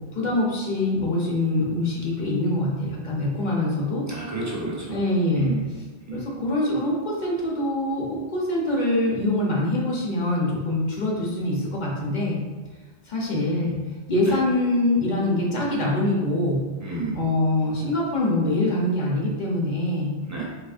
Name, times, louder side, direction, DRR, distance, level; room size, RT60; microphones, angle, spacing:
voice 1, 0.1-4.1 4.9-5.6 6.1-12.4 13.1-13.8 14.1-16.7 17.1-20.1, left 1 dB, 45° left, -3 dB, 0.9 m, -24 dB
voice 2, 4.1-4.9 5.3-5.6 6.1-6.2 14.3-14.4 16.8-17.2 20.3-20.4, right 3 dB, 20° right, -6 dB, 0.6 m, -31 dB
4.2 x 3.0 x 2.5 m, 1.3 s
omnidirectional pair, 1.1 m